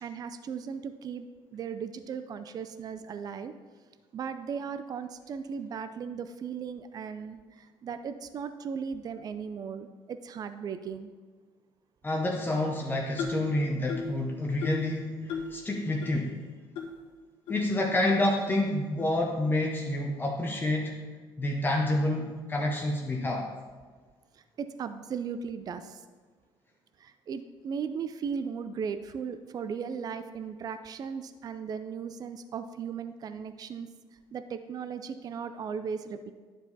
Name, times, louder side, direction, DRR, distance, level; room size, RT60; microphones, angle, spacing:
voice 1, 0.0-3.5 4.1-11.1 24.3-26.0 27.0-36.3, right 6 dB, 45° right, 10 dB, 0.4 m, -37 dB
voice 2, 12.0-16.4 17.5-21.0 21.4-23.5, left 1 dB, 20° left, -1 dB, 0.9 m, -28 dB
sound 1, 13.2-13.5 13.9-14.2 14.6-14.9 15.3-15.6 16.0-16.1 16.7-16.9 17.5-17.6 18.3-18.4 19.0-19.2, left 4 dB, 75° left, 1.6 m, -35 dB
10.5 x 4.8 x 4.0 m, 1.5 s
cardioid pair, 100°, 9 cm